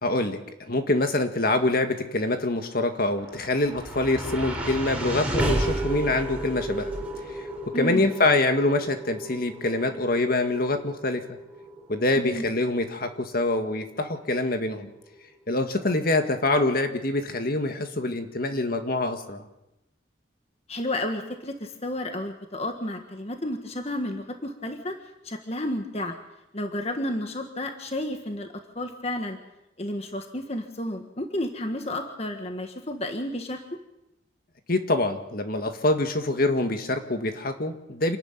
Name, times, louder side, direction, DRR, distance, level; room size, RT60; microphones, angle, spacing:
voice 1, 0.0-6.9 7.3-7.5 7.7-11.4 11.9-14.9 15.5-19.4 34.7-38.2, left 2 dB, 50° left, 6 dB, 2.0 m, -25 dB
sound 1, 2.8-15.2, right 1 dB, 5° right, 3.9 m, -33 dB
voice 2, 7.7-8.1 12.2-12.4 20.7-25.0 25.2-26.1 26.5-28.5 28.7-29.4 29.8-33.6, left 1 dB, 35° left, 5 dB, 1.6 m, -31 dB
27.5 x 13.0 x 9.1 m, 0.90 s
head